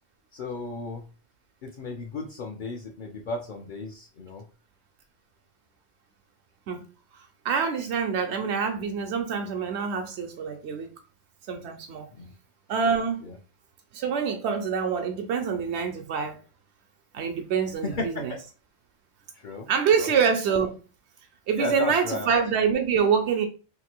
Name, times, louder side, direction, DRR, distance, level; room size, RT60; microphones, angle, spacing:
voice 1, 0.3-1.0 1.6-4.4 12.1-12.3 13.2-13.3 17.8-18.2 19.4-19.7 19.9-20.1 21.6-22.3, left 2 dB, 55° left, 0.7 m, -34 dB
voice 2, 7.4-10.9 11.5-12.1 12.7-13.2 13.9-16.4 17.1-18.3 19.7-20.8 21.5-23.5, right 6 dB, 90° right, 0.9 m, -26 dB
2.9 x 2.5 x 4.3 m
omnidirectional pair, 1.1 m